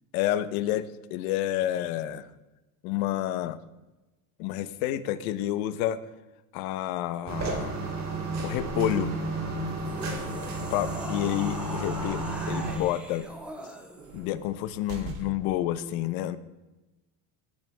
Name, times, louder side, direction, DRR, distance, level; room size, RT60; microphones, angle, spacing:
voice 1, 0.1-2.3 2.8-3.6 4.4-6.0 6.5-7.8 8.4-9.1 10.7-13.3 14.1-16.4, left 13 dB, 85° left, 13 dB, 1.1 m, -29 dB
sound 1, 7.3-12.8, right 2 dB, 40° right, 3.6 m, -32 dB
sound 2, 9.7-14.3, equal, 5° right, 2.0 m, -41 dB
sound 3, 10.3-15.7, right 3 dB, 80° right, 3.2 m, -47 dB
19.0 x 9.7 x 3.5 m, 1.1 s
cardioid pair, 130°, 41 cm